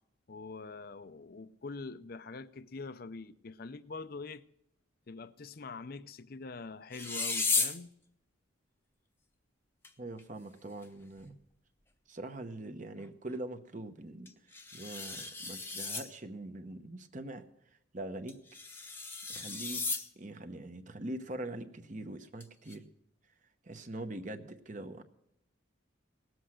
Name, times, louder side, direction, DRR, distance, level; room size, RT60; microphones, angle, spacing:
voice 1, 0.3-4.4 5.1-7.9, left 3 dB, 50° left, 0.5 m, -44 dB
sound 1, 6.9-7.8 9.8-9.9 10.2-10.3 10.8-10.9 14.3-16.1 18.3-20.1 22.4-22.8, left 3 dB, 10° left, 0.8 m, -34 dB
voice 2, 10.0-11.4 12.1-17.5 17.9-18.4 18.8-18.9 19.3-19.9 20.2-22.9 23.6-25.0, right 1 dB, 40° right, 0.9 m, -43 dB
18.5 x 7.8 x 6.3 m
head